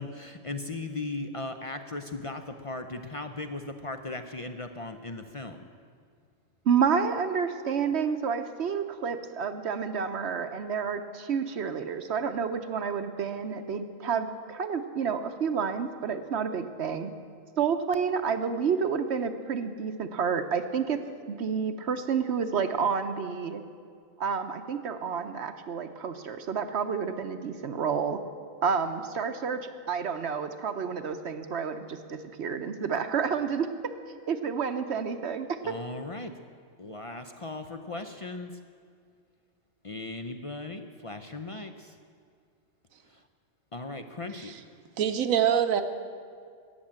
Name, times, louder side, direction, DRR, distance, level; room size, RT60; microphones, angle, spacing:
voice 1, 0.0-5.6 35.6-36.3 36.8-38.5 39.8-41.9 43.7-44.5, left 2 dB, 45° left, 7 dB, 0.4 m, -37 dB
voice 2, 6.7-17.1 17.6-21.0 21.3-23.6 24.2-28.2 28.6-33.7 34.3-35.8, right 6 dB, 60° right, 9 dB, 0.9 m, -29 dB
voice 3, 45.0-45.8, right 9 dB, 80° right, 9 dB, 1.3 m, -25 dB
13.5 x 8.9 x 8.7 m, 2.2 s
omnidirectional pair, 1.4 m